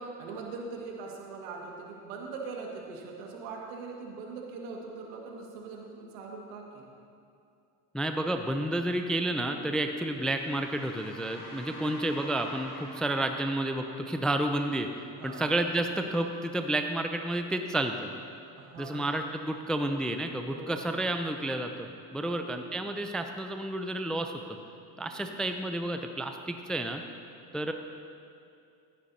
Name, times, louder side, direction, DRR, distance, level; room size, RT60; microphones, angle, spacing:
voice 1, 0.0-6.9 11.7-12.1 15.2-15.6 18.6-19.1 20.5-21.0 22.1-22.7 25.1-25.4, right 4 dB, 80° right, 0 dB, 1.9 m, -42 dB
voice 2, 7.9-18.1 18.8-24.3 25.0-27.0 27.5-27.7, right 1 dB, ahead, 6 dB, 0.4 m, -31 dB
sound 1, 10.1-16.1, left 1 dB, 45° left, 2.9 m, -48 dB
15.0 x 10.5 x 2.8 m, 2.5 s
supercardioid pair, 85°, 46 cm